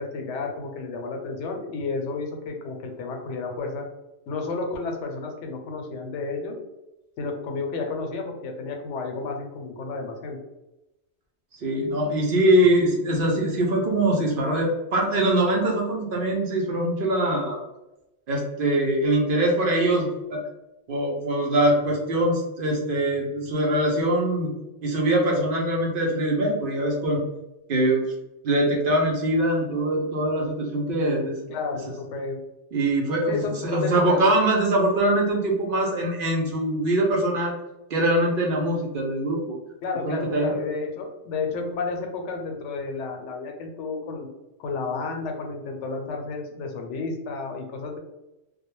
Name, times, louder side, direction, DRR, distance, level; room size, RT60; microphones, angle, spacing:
voice 1, 0.0-3.8 4.3-6.6 7.2-10.4 31.5-32.4 33.3-34.2 39.8-44.3 44.6-48.0, left 4 dB, 85° left, 2 dB, 0.9 m, -31 dB
voice 2, 11.6-17.6 18.3-20.4 20.9-24.5 24.8-27.2 27.7-28.0 28.4-31.4 32.7-37.5 37.9-39.6 40.0-40.5, right 1 dB, 60° right, -1 dB, 0.7 m, -23 dB
2.3 x 2.1 x 3.0 m, 0.95 s
omnidirectional pair, 1.2 m